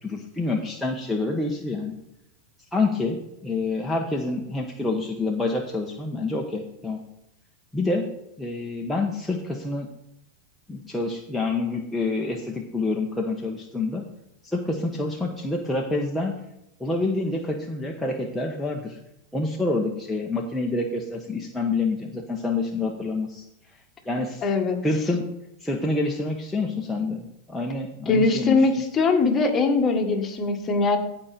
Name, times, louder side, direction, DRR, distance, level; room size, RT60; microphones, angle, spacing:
voice 1, 0.0-1.9 2.7-7.0 7.7-8.0 8.4-9.9 10.7-14.0 14.4-16.3 16.8-19.0 19.3-23.4 24.1-24.4 24.8-25.2 25.6-28.7, left 3 dB, 5° left, -1 dB, 1.2 m, -27 dB
voice 2, 24.4-24.8 28.1-31.0, left 3 dB, 25° left, 3 dB, 1.8 m, -21 dB
15.5 x 5.2 x 4.4 m, 0.83 s
hypercardioid pair, 115°, 0 cm